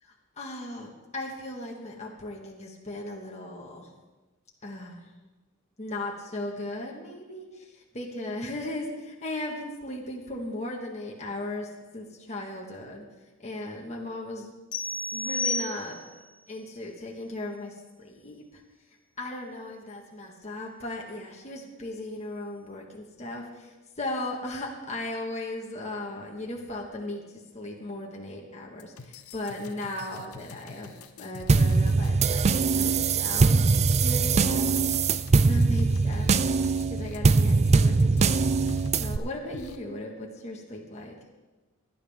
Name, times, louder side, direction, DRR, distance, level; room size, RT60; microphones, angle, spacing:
voice 1, 0.0-3.9 4.6-5.0 5.8-11.7 11.9-13.0 13.4-14.5 15.1-16.0 16.5-18.6 19.2-33.7 33.9-34.9 35.3-41.1, left 1 dB, 30° left, -1 dB, 1.6 m, -37 dB
sound 1, 14.7-16.3, left 2 dB, 55° left, 1.4 m, -31 dB
sound 2, 28.8-39.2 39.5-39.8, left 4 dB, 80° left, 0.9 m, -46 dB
sound 3, 31.5-39.2, right 4 dB, 30° right, 0.4 m, -22 dB
17.0 x 11.0 x 3.6 m, 1.2 s
head